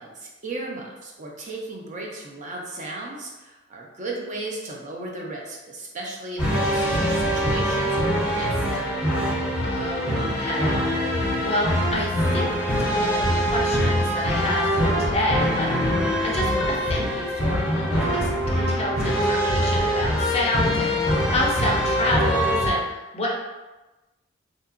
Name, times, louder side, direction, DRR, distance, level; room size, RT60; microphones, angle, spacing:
voice 1, 0.0-9.2, right 2 dB, 40° right, -2 dB, 0.5 m, -35 dB
sound 1, 6.4-22.7, equal, 5° right, 1.2 m, -23 dB
voice 2, 9.6-10.8 11.1-12.5 12.9-13.3 13.5-15.7 16.0-23.3, left 1 dB, 30° left, -2 dB, 0.4 m, -29 dB
2.8 x 2.4 x 2.4 m, 1.1 s
head